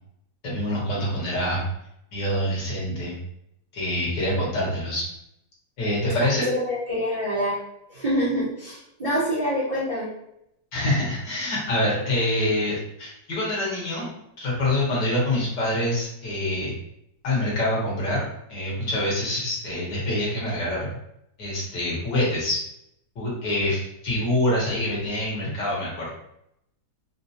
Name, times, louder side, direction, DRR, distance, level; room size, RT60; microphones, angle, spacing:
voice 1, 0.4-1.6 2.1-3.2 3.7-5.0 5.8-6.5 10.7-14.1 14.4-16.7 17.2-21.0 21.4-22.6 23.2-26.1, left 1 dB, 75° left, -5 dB, 1.8 m, -25 dB
voice 2, 6.4-7.5 7.9-10.1, equal, 25° right, -9 dB, 1.0 m, -26 dB
4.4 x 2.0 x 2.7 m, 0.79 s
omnidirectional pair, 1.9 m